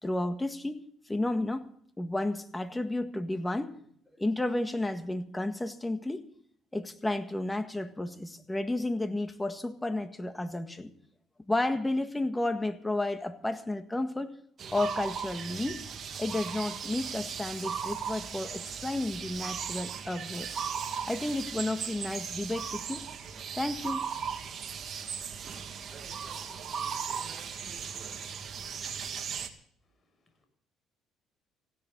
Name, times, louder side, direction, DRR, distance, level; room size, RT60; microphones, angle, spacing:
voice 1, 0.0-1.7 2.0-3.8 4.2-6.2 6.7-10.9 11.5-14.4 14.7-15.8 16.2-20.5 21.1-23.1 23.6-24.0, left 2 dB, 15° left, 9 dB, 1.7 m, -32 dB
sound 1, 14.6-29.5, right 7 dB, 50° right, 2.1 m, -37 dB
voice 2, 29.8-30.5, left 2 dB, 30° left, 6 dB, 6.9 m, -73 dB
18.5 x 16.0 x 4.0 m, 0.63 s
supercardioid pair, 85°, 0 cm